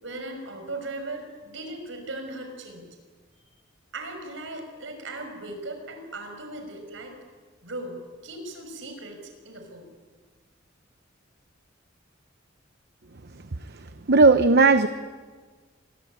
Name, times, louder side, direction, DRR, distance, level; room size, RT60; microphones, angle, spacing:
voice 1, 0.0-2.9 3.9-7.2 7.6-9.9, right 2 dB, 70° right, 5 dB, 6.3 m, -38 dB
voice 2, 13.3-14.9, right 3 dB, 55° right, 10 dB, 0.9 m, -19 dB
27.5 x 22.0 x 8.9 m, 1.5 s
head